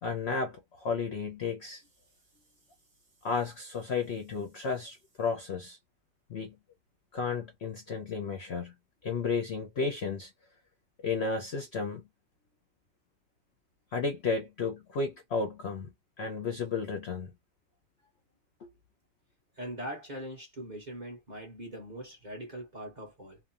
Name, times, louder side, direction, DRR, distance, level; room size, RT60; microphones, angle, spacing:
voice 1, 0.0-1.8 3.2-5.8 6.3-6.6 7.1-8.7 9.0-10.3 11.0-12.1 13.9-17.3 18.6-18.7, left 4 dB, 60° left, 0.6 m, -33 dB
voice 2, 19.6-23.4, right 1 dB, 35° right, 0.9 m, -41 dB
3.1 x 2.1 x 2.4 m
omnidirectional pair, 1.8 m